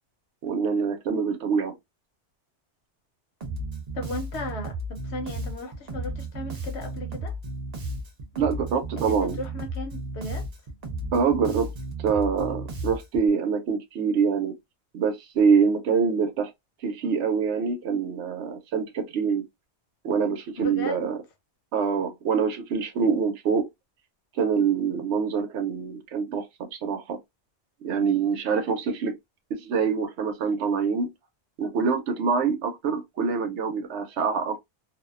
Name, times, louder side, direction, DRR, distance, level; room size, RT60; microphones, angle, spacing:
voice 1, 0.4-1.7 8.4-9.4 11.1-11.7 12.0-14.5 14.9-16.5 16.8-19.5 20.0-21.2 21.7-23.7 24.3-27.2 27.8-29.2 29.5-31.1 31.6-34.6, right 6 dB, 80° right, 0.9 m, -25 dB
Bass guitar, 3.4-13.3, right 2 dB, 45° right, 0.6 m, -34 dB
voice 2, 3.9-7.3 9.0-10.4 20.6-21.1, left 2 dB, 75° left, 1.0 m, -35 dB
2.5 x 2.1 x 2.3 m
omnidirectional pair, 1.2 m